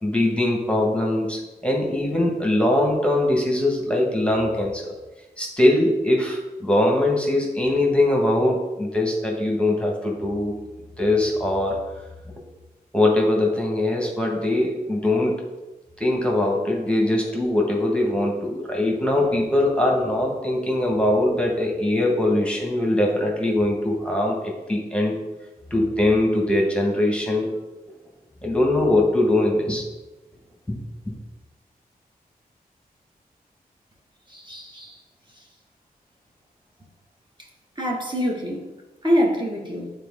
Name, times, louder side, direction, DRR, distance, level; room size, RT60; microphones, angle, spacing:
voice 1, 0.0-4.9 5.4-10.6 11.0-11.8 12.9-15.5 16.0-25.2 25.7-27.5 28.4-29.8 30.7-30.8 31.1-31.2, left 1 dB, 5° left, -1 dB, 1.6 m, -22 dB
voice 2, 34.3-34.9 37.8-38.6 39.0-39.9, equal, 30° right, -2 dB, 1.8 m, -24 dB
9.1 x 4.1 x 3.7 m, 1.1 s
cardioid pair, 50°, 16 cm